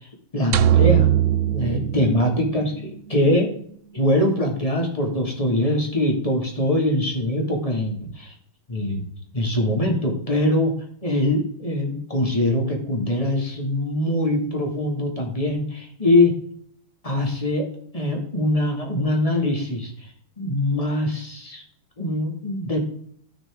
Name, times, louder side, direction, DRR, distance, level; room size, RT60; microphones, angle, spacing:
voice 1, 0.3-1.1 1.5-3.5 3.9-8.3 8.7-9.0 9.3-10.7 11.0-16.4 17.0-17.7 17.9-19.9 20.4-21.6 22.0-22.8, left 1 dB, 20° left, 1 dB, 2.2 m, -22 dB
sound 1, 0.5-2.8, right 11 dB, 90° right, 1.5 m, -20 dB
14.0 x 6.1 x 3.7 m, 0.62 s
omnidirectional pair, 2.2 m